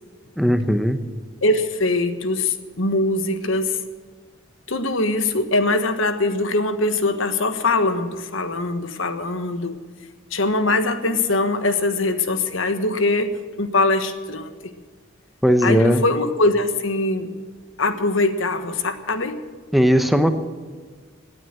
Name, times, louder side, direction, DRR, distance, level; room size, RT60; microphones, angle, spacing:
voice 1, 0.4-1.0 15.4-16.0 19.7-20.3, equal, ahead, 8 dB, 0.9 m, -17 dB
voice 2, 1.4-3.9 4.7-9.8 10.3-14.7 15.6-17.4 17.8-19.4, left 2 dB, 80° left, 9 dB, 1.4 m, -22 dB
18.0 x 9.4 x 7.6 m, 1.5 s
head